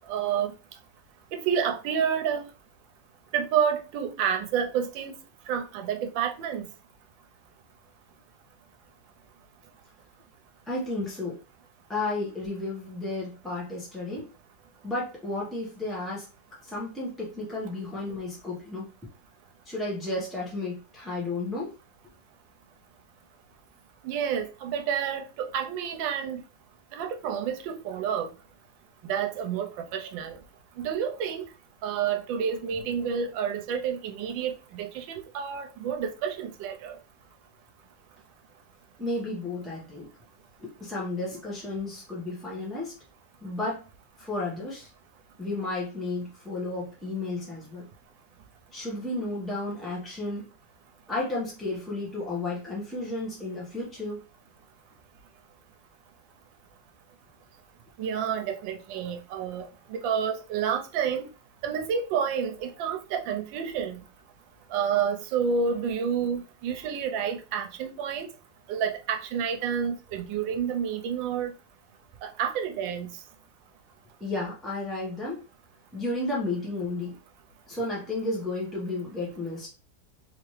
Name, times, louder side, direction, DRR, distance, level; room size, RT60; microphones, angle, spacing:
voice 1, 0.1-0.5 1.3-2.5 3.3-5.1 5.5-6.6 24.0-26.4 26.9-28.3 29.0-30.4 30.8-31.4 31.8-37.0 58.0-61.3 61.6-64.0 64.7-68.3 68.7-71.5 72.2-73.1, right 7 dB, 90° right, 1.3 m, -29 dB
voice 2, 10.7-11.4 11.9-14.3 14.8-16.3 16.6-18.9 19.6-21.7 39.0-40.1 40.6-42.9 43.4-43.8 44.2-44.9 45.4-47.9 48.7-50.4 51.1-54.2 74.2-75.4 75.9-77.2 77.7-79.7, left 2 dB, ahead, 0.5 m, -32 dB
3.4 x 2.9 x 3.1 m
omnidirectional pair, 2.0 m